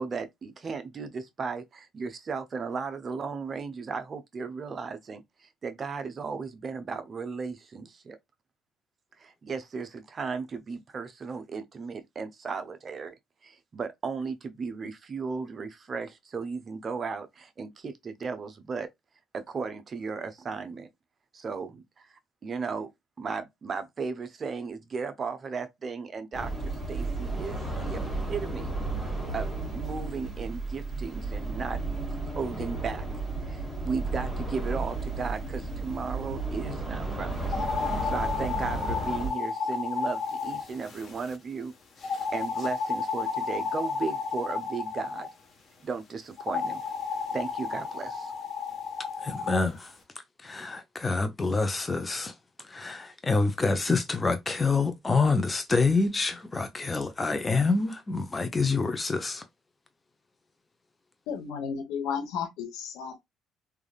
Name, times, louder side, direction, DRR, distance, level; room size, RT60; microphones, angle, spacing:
voice 1, 0.0-8.2 9.2-13.1 13.4-18.9 19.3-20.9 21.3-22.9 23.2-28.0 28.3-28.7 29.3-31.8 32.3-33.0 33.5-37.7 38.0-41.7 42.0-45.3 45.8-46.8 47.3-48.3, right 5 dB, 40° right, 0.6 m, -35 dB
sound 1, 26.3-39.3, right 2 dB, 5° left, 1.4 m, -33 dB
sound 2, 37.5-41.4 42.0-45.3 46.4-49.6, left 5 dB, 50° left, 1.1 m, -32 dB
voice 2, 49.2-49.9 50.4-52.3 52.6-59.4, left 3 dB, 25° left, 0.7 m, -27 dB
voice 3, 61.3-63.2, left 7 dB, 80° left, 1.0 m, -33 dB
3.4 x 2.4 x 2.3 m
supercardioid pair, 80°, 0 cm